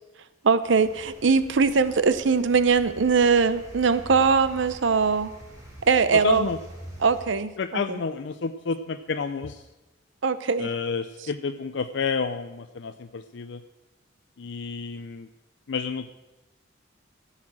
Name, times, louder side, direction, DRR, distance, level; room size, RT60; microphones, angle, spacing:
voice 1, 0.4-5.3 5.9-6.4 7.0-7.5 10.2-10.7, right 5 dB, 70° right, 13 dB, 0.7 m, -21 dB
sound 1, 0.6-7.2, equal, 20° right, 2.9 m, -45 dB
voice 2, 6.1-6.6 7.6-9.7 10.6-13.6 14.4-15.3 15.7-16.1, left 4 dB, 65° left, 9 dB, 0.5 m, -30 dB
15.0 x 5.8 x 7.6 m, 1.1 s
head